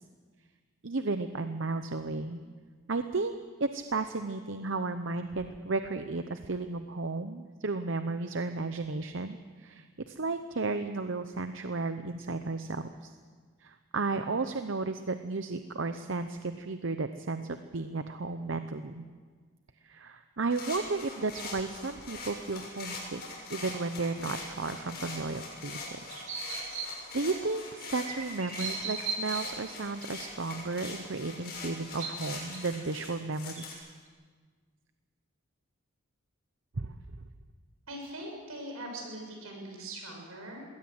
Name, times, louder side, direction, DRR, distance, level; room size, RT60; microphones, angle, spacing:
voice 1, 0.8-2.4 2.9-13.1 13.6-19.0 19.8-23.2 23.5-26.0 26.7-33.8 36.8-36.9, right 3 dB, 60° right, 9 dB, 0.8 m, -34 dB
sound 1, 20.5-33.7, left 3 dB, 45° left, 6.7 m, -42 dB
sound 2, 26.1-27.0 28.0-29.6 30.0-30.2 30.8-30.9 31.8-32.6 33.1-33.2 33.6-33.7, right 5 dB, 35° right, 3.2 m, -37 dB
voice 2, 37.9-40.7, right 1 dB, 80° right, 2 dB, 6.5 m, -41 dB
22.0 x 17.0 x 7.8 m, 1.5 s
head